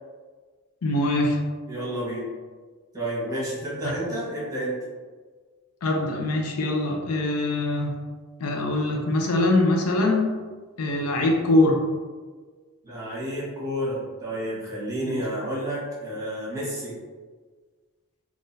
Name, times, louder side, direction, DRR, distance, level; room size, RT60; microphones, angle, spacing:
voice 1, 0.8-1.4 5.8-8.0 8.4-10.3 10.8-11.8 15.0-15.2, left 2 dB, 75° left, 1 dB, 0.5 m, -23 dB
voice 2, 1.7-2.3 2.9-4.7 12.8-16.9, right 1 dB, 15° right, -7 dB, 1.2 m, -30 dB
3.7 x 2.4 x 2.6 m, 1.5 s
head